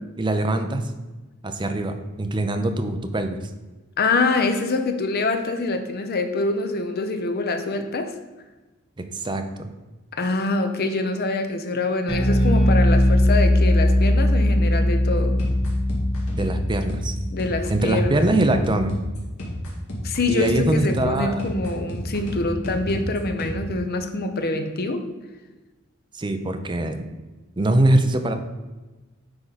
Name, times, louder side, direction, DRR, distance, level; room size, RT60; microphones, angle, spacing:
voice 1, 0.2-0.8 1.4-3.4 9.0-9.7 16.3-17.1 17.7-18.9 20.3-21.4 26.1-27.1 27.6-28.3, right 1 dB, 20° right, 6 dB, 0.6 m, -23 dB
voice 2, 4.0-8.1 10.1-15.4 17.3-18.3 20.0-25.0, left 3 dB, 45° left, 7 dB, 0.7 m, -25 dB
Bass guitar, 12.1-18.5, left 1 dB, 65° left, 1.8 m, -20 dB
sound 1, 15.4-23.6, equal, 85° left, 1.8 m, -32 dB
9.7 x 3.8 x 4.1 m, 1.2 s
head